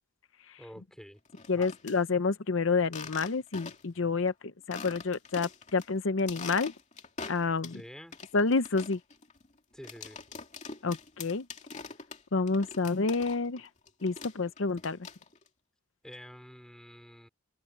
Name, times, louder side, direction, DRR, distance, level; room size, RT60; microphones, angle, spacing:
voice 1, 0.6-1.2 1.5-1.7 7.7-8.2 9.7-10.2 16.0-17.3, equal, 5° left, 3.6 m, -48 dB
sound 1, 1.3-2.0 2.8-4.0 4.3-4.4 4.7-5.9 6.2-7.8 8.1-13.6 13.9-15.5, left 5 dB, 35° left, 2.6 m, -44 dB
voice 2, 1.5-6.7 7.3-7.8 8.3-9.0 10.8-11.5 12.3-13.7 14.0-15.0, left 4 dB, 65° left, 0.7 m, -29 dB
open air
head